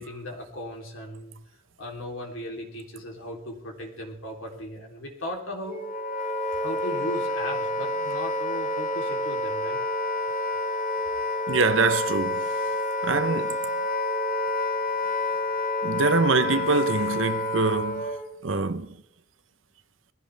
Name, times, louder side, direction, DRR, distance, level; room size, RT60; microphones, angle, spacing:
voice 1, 0.0-5.8 6.6-9.8, left 1 dB, 90° left, 3.5 m, -37 dB
Wind instrument woodwind instrument, 5.7-18.3, left 2 dB, 45° left, 2.1 m, -28 dB
voice 2, 11.5-12.5 13.0-13.6 15.8-18.1 18.4-18.9, right 4 dB, 85° right, 1.0 m, -24 dB
21.0 x 15.5 x 3.5 m
head